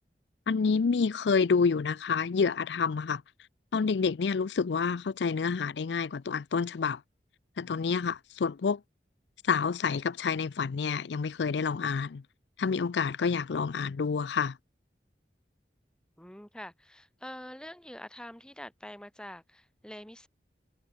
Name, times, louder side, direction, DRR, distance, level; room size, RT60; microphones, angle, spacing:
voice 1, 0.5-3.2 3.7-7.0 7.6-8.8 9.4-12.2 12.6-14.6, left 5 dB, 85° left, 0.5 m, -28 dB
voice 2, 16.2-20.3, left 1 dB, 5° left, 1.0 m, -45 dB
head